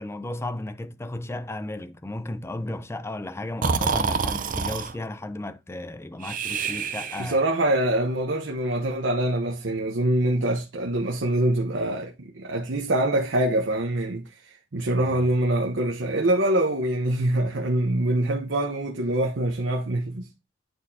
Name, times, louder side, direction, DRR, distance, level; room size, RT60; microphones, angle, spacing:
voice 1, 0.0-7.4 15.0-15.2, left 2 dB, 15° left, 0.4 m, -34 dB
Breathing, 3.6-4.9 6.2-7.5, right 5 dB, 45° right, 0.6 m, -27 dB
voice 2, 7.2-20.3, right 1 dB, 75° right, 0.9 m, -24 dB
9.4 x 4.3 x 2.7 m
head